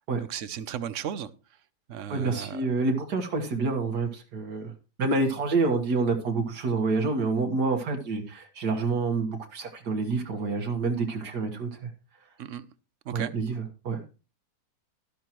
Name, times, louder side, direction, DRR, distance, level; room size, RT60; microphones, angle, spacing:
voice 1, 0.2-1.3 1.9-2.6 12.4-12.7 13.1-13.3, right 9 dB, 60° right, 0.9 m, -35 dB
voice 2, 2.1-4.7 5.0-11.9 13.1-14.0, right 3 dB, 80° right, 2.0 m, -28 dB
12.0 x 12.0 x 3.0 m
omnidirectional pair, 1.7 m